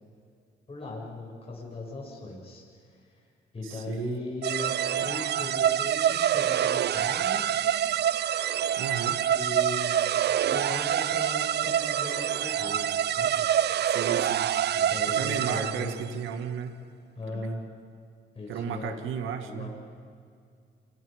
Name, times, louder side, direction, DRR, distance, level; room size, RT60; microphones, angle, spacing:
voice 1, 0.7-3.2 3.5-7.7 9.3-13.5 14.7-16.2 17.2-17.6 18.3-19.0 19.4-19.8, left 2 dB, 30° left, -3 dB, 7.4 m, -38 dB
voice 2, 3.6-4.2 8.8-9.2 13.9-14.5 15.0-16.8 17.3-17.6 18.5-19.7, right 7 dB, 85° right, 7 dB, 2.1 m, -34 dB
sound 1, 4.4-16.1, right 10 dB, 55° right, 0.5 m, -26 dB
29.0 x 26.0 x 5.3 m, 2.3 s
cardioid pair, 90°, 20 cm